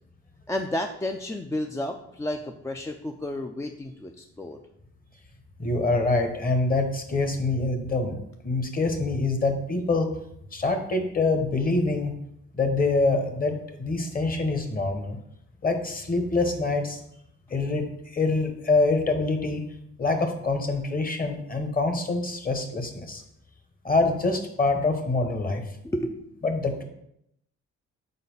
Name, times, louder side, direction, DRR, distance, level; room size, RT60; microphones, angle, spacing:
voice 1, 0.5-4.6 25.8-26.3, left 1 dB, 10° left, 4 dB, 0.3 m, -32 dB
voice 2, 5.6-10.1 10.5-12.1 12.5-15.2 15.6-17.0 17.5-17.8 18.1-19.6 20.0-23.2 23.8-25.6 26.4-26.8, left 3 dB, 30° left, 6 dB, 1.0 m, -25 dB
4.3 x 4.1 x 5.4 m, 0.76 s
cardioid pair, 90°, 30 cm